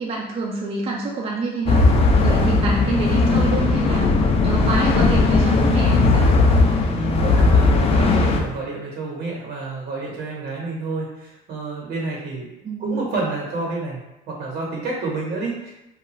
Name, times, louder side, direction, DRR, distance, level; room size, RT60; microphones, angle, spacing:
voice 1, 0.0-1.8 2.2-6.3 12.6-13.1, right 3 dB, 35° right, -1 dB, 0.4 m, -27 dB
sound 1, 1.7-8.4, left 3 dB, 35° left, 0.4 m, -17 dB
voice 2, 2.5-2.9 6.9-12.5 12.8-15.7, right 3 dB, 75° right, -3 dB, 1.1 m, -29 dB
2.4 x 2.3 x 3.0 m, 0.92 s
cardioid pair, 110°, 17 cm